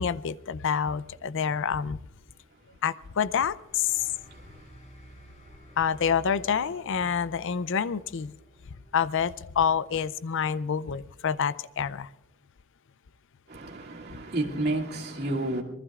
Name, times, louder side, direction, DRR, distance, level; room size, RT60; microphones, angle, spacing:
voice 1, 0.0-2.0 2.8-3.9 5.8-8.3 8.9-12.1, left 7 dB, 60° left, 0.5 m, -27 dB
sound 1, 3.5-10.6, equal, 30° left, 6.3 m, -52 dB
voice 2, 13.5-15.6, right 2 dB, 50° right, 2.5 m, -30 dB
26.5 x 20.5 x 2.4 m
head